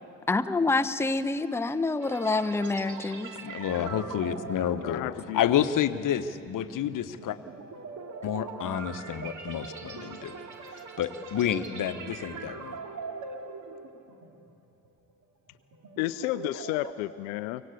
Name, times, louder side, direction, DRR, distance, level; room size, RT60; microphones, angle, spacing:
voice 1, 0.3-3.3, left 3 dB, 5° left, 11 dB, 0.8 m, -27 dB
sound 1, 2.0-14.5 14.8-15.1 15.6-16.9, right 4 dB, 45° right, 2.3 m, -42 dB
voice 2, 3.4-5.1 5.3-7.4 8.2-10.3 11.0-12.8, left 9 dB, 45° left, 12 dB, 1.1 m, -29 dB
voice 3, 4.8-5.4 16.0-17.6, left 16 dB, 70° left, 15 dB, 0.6 m, -31 dB
25.0 x 16.5 x 8.3 m, 2.8 s
hypercardioid pair, 55°, 43 cm